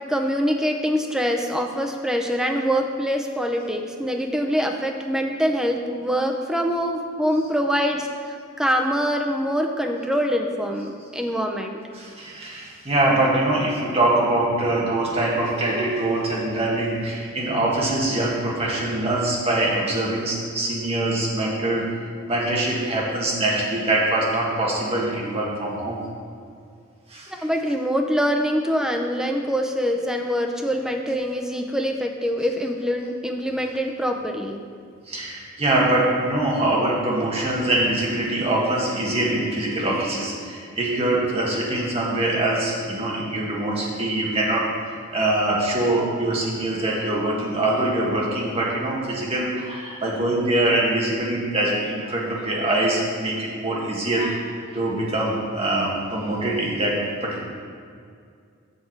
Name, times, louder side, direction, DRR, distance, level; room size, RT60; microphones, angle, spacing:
voice 1, 0.1-8.1 8.6-11.8 27.3-34.6, equal, 5° right, 2 dB, 0.5 m, -24 dB
voice 2, 11.9-21.9 22.3-26.0 27.1-27.3 35.1-54.4 54.7-57.0 57.2-57.4, right 1 dB, 30° right, -3 dB, 1.4 m, -23 dB
6.9 x 6.6 x 4.5 m, 2.2 s
head